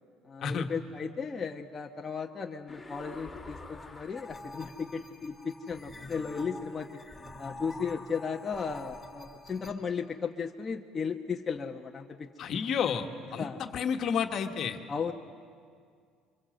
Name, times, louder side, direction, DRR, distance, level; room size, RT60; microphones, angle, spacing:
voice 1, 0.2-7.0 7.4-12.3 13.4-13.7 14.9-15.1, left 5 dB, 25° left, 1 dB, 1.0 m, -35 dB
sound 1, 2.7-9.7, left 2 dB, 10° left, 3.3 m, -46 dB
voice 2, 12.4-14.8, left 7 dB, 55° left, 5 dB, 1.5 m, -31 dB
26.0 x 24.5 x 7.8 m, 2.2 s
cardioid pair, 105°, 0 cm